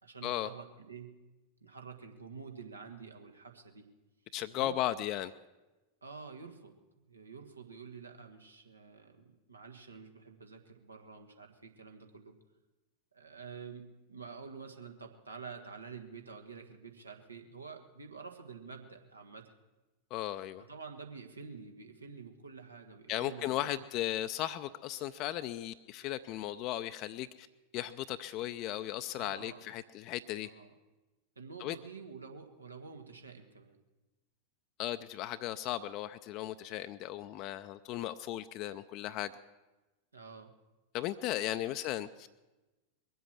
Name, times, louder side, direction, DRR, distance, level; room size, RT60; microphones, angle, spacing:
voice 1, 0.0-1.1 1.6-3.9 4.5-4.8 6.0-6.7 7.1-12.3 13.1-19.5 20.7-23.7 29.2-29.6 30.4-30.7 31.3-33.8 40.1-40.5, right 5 dB, 80° right, 4 dB, 1.6 m, -48 dB
voice 2, 4.3-5.3 20.1-20.6 23.1-27.5 27.7-30.5 31.6-31.8 34.8-39.3 40.9-42.3, left 13 dB, 40° left, 10 dB, 0.5 m, -36 dB
22.0 x 8.0 x 7.5 m, 1.1 s
figure-of-eight pair, 90°, 0 cm